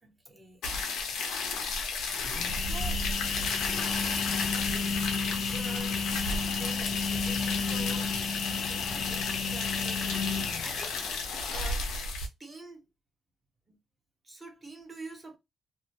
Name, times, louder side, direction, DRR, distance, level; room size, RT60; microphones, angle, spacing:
voice 1, 0.0-0.8 2.5-3.1 4.1-4.2 4.5-5.0 5.5-6.0 6.5-8.2 8.4-11.0 11.5-11.9 12.4-12.8 13.7-13.8 14.2-15.4, right 2 dB, 20° right, 1.0 m, -46 dB
sound 1, 0.6-12.3, left 4 dB, 80° left, 0.8 m, -33 dB
sound 2, 2.0-11.5, left 5 dB, 55° left, 0.4 m, -32 dB
2.6 x 2.0 x 2.8 m
cardioid pair, 90°, 0 cm